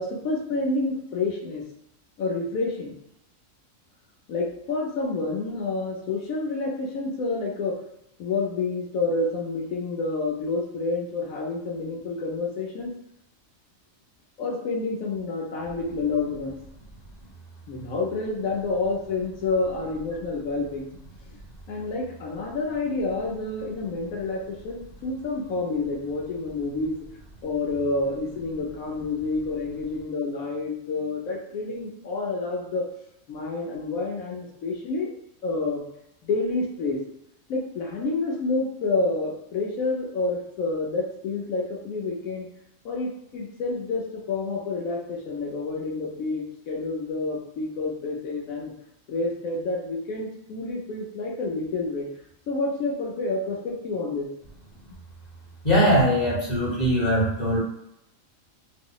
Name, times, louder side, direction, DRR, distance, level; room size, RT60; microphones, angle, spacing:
voice 1, 0.0-1.6 2.2-3.0 4.3-7.8 8.2-12.9 14.4-16.6 17.7-20.9 21.7-27.1 27.4-32.8 33.3-35.1 35.4-35.8 36.2-37.0 37.5-42.5 42.8-48.7 49.1-52.1 52.5-54.3, left 3 dB, 80° left, -1 dB, 1.2 m, -29 dB
voice 2, 55.6-57.6, equal, 35° left, -5 dB, 0.9 m, -21 dB
2.8 x 2.0 x 3.8 m, 0.81 s
omnidirectional pair, 1.4 m